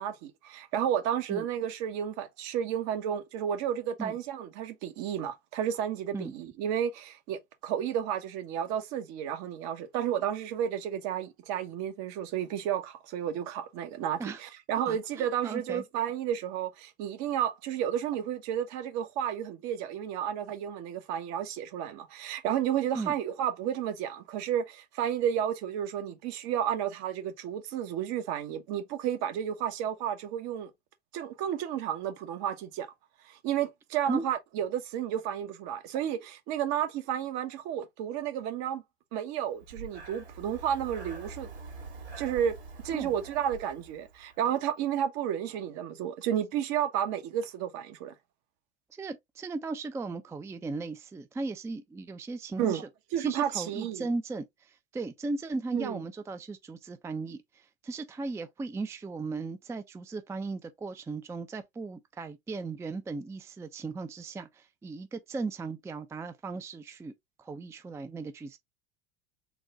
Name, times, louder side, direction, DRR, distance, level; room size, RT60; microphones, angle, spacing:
voice 1, 0.0-30.7 31.1-32.9 33.2-38.8 39.1-41.5 42.2-42.6 42.8-48.1 52.6-52.9 53.1-54.1 55.7-56.0, right 9 dB, 55° right, 1.0 m, -32 dB
voice 2, 14.9-15.8 22.9-23.1 34.1-34.2 42.9-43.1 49.0-52.8 53.2-67.1 67.4-68.6, right 3 dB, 10° right, 0.4 m, -37 dB
Breathing, 39.6-44.5, right 4 dB, 85° right, 2.1 m, -45 dB
4.0 x 2.2 x 3.7 m
hypercardioid pair, 90°, 33 cm